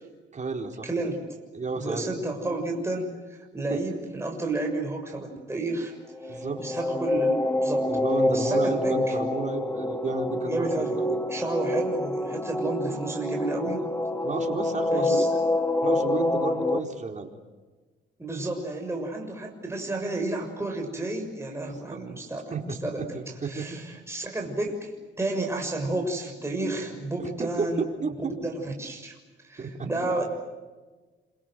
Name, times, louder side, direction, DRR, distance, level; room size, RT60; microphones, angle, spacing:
voice 1, 0.3-0.9 1.5-2.0 3.7-3.8 6.3-6.6 7.9-11.2 14.2-15.3 15.8-17.3 21.7-22.0 22.5-23.8 27.2-28.3 29.6-29.9, right 4 dB, 35° right, 3 dB, 4.5 m, -32 dB
voice 2, 0.8-1.3 1.7-5.9 6.2-7.9 8.3-9.2 10.4-13.9 14.9-15.3 18.2-23.1 23.4-24.9 25.2-27.8 28.2-29.2 29.4-30.3, right 2 dB, 15° right, 1 dB, 6.8 m, -31 dB
sound 1, 6.1-16.8, left 1 dB, 10° left, 2.7 m, -27 dB
27.5 x 26.5 x 7.8 m, 1.3 s
cardioid pair, 90°, 20 cm